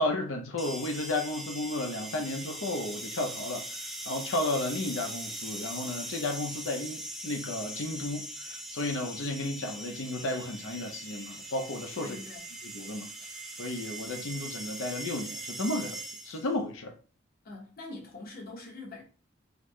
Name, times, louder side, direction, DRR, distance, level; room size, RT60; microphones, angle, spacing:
voice 1, 0.0-3.7 4.1-12.2 12.6-13.1 13.6-16.9, left 2 dB, 90° left, 0.6 m, -33 dB
sound 1, 0.6-16.5, right 1 dB, ahead, 0.4 m, -41 dB
voice 2, 11.9-12.4 17.4-19.0, left 2 dB, 50° left, 1.2 m, -44 dB
4.1 x 2.1 x 3.0 m
head